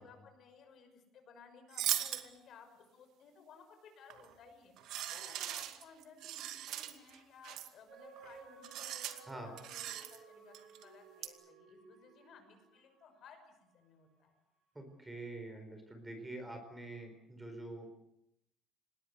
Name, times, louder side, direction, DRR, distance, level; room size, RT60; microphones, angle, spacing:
voice 1, 0.0-14.3, left 5 dB, 50° left, 6 dB, 6.0 m, -59 dB
sound 1, 1.7-2.3 4.1-4.3 4.8-7.2 7.4-7.7 8.2-8.4 8.6-9.2 9.6-10.2 10.5-10.8 11.2-11.3, right 12 dB, 70° right, 2.4 m, -39 dB
sound 2, 7.9-13.6 14.1-14.2, right 5 dB, 45° right, 7.9 m, -57 dB
voice 2, 14.7-18.0, right 2 dB, 10° right, 5 dB, 4.6 m, -46 dB
27.0 x 20.0 x 8.2 m, 0.80 s
cardioid pair, 160°, 0 cm